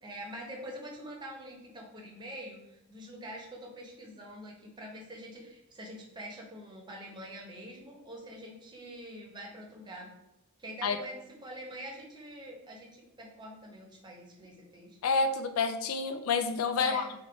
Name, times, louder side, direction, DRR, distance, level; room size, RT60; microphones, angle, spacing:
voice 1, 0.0-10.1 10.6-15.0 16.8-17.1, right 1 dB, 20° right, -2 dB, 0.8 m, -45 dB
voice 2, 15.0-17.1, left 4 dB, 75° left, 8 dB, 0.4 m, -28 dB
3.5 x 2.4 x 3.8 m, 0.92 s
head